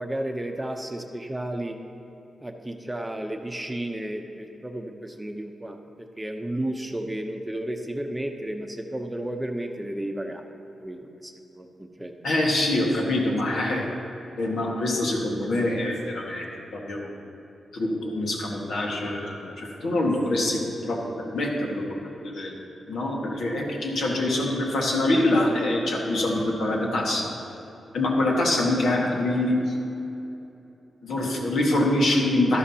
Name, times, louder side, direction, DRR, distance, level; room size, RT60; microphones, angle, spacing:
voice 1, 0.0-1.8 2.4-10.4 10.8-12.1, right 1 dB, 10° right, 4 dB, 0.8 m, -33 dB
voice 2, 12.2-13.9 14.4-17.1 17.7-21.0 21.3-21.8 22.2-22.5 22.9-27.3 27.9-29.7 31.0-32.6, left 1 dB, 80° left, -2 dB, 1.7 m, -25 dB
12.5 x 11.5 x 2.8 m, 3.0 s
cardioid pair, 85°, 0 cm